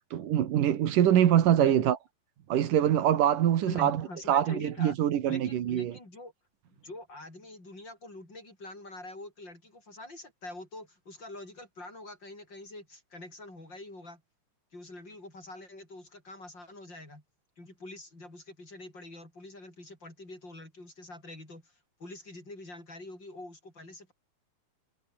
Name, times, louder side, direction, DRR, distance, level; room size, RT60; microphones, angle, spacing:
voice 1, 0.1-2.0 2.5-5.9, right 10 dB, 85° right, 3.3 m, -24 dB
voice 2, 1.6-1.9 3.6-5.0 5.3-6.3 6.8-14.2 14.7-17.2 17.6-21.7 22.0-24.1, left 2 dB, 30° left, 8.8 m, -45 dB
omnidirectional pair, 3.7 m